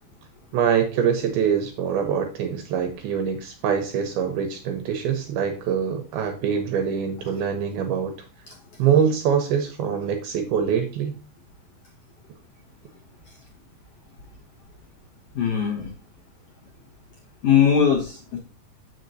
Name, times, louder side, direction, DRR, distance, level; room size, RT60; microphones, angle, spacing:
voice 1, 0.5-8.1 8.8-11.2, right 7 dB, 80° right, 5 dB, 2.5 m, -24 dB
voice 2, 15.3-15.9 17.4-18.4, left 8 dB, 85° left, -1 dB, 1.3 m, -20 dB
7.6 x 6.1 x 2.7 m, 0.38 s
omnidirectional pair, 4.6 m